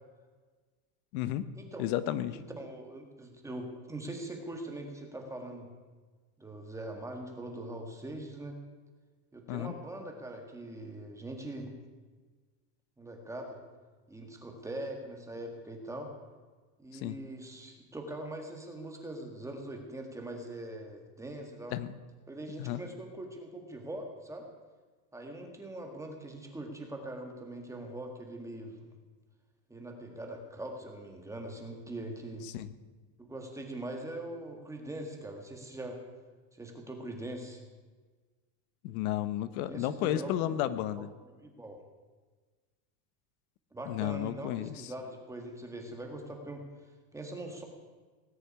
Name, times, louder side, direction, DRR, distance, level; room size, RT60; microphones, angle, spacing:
voice 1, 1.1-1.5 1.8-2.4 9.5-9.7 17.0-17.2 21.7-21.9 22.6-22.8 32.5-32.7 38.8-41.1 43.9-44.7, left 13 dB, 65° left, 14 dB, 1.0 m, -32 dB
voice 2, 2.3-5.7 6.4-8.6 9.3-11.7 13.0-13.6 14.1-16.1 16.8-21.7 22.3-24.5 25.1-28.9 29.7-32.5 33.2-36.0 36.5-37.6 39.7-41.0 41.4-41.8 43.7-46.6 47.1-47.6, right 1 dB, 5° right, 2 dB, 1.7 m, -42 dB
18.5 x 6.7 x 9.7 m, 1.4 s
supercardioid pair, 165°, 48 cm